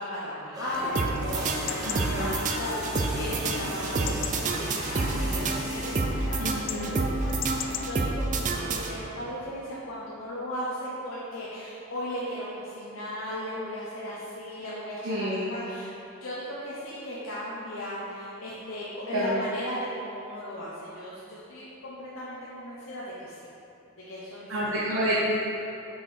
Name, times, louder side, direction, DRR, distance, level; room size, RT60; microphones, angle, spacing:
voice 1, 0.0-15.9 16.2-23.3 24.1-24.8, equal, 65° left, -7 dB, 0.8 m, -36 dB
sound 1, 0.5-6.0, right 1 dB, 20° right, 0.9 m, -39 dB
Chatter / Livestock farm animals working animals / Chirp tweet, 0.7-7.9, left 6 dB, 40° left, 0.3 m, -38 dB
sound 2, 0.9-9.3, right 3 dB, 40° right, 0.5 m, -29 dB
voice 2, 1.8-2.3 6.4-6.9 15.0-15.4 19.1-19.4 24.5-25.3, equal, 70° right, -9 dB, 1.0 m, -28 dB
6.0 x 4.3 x 5.0 m, 2.9 s
head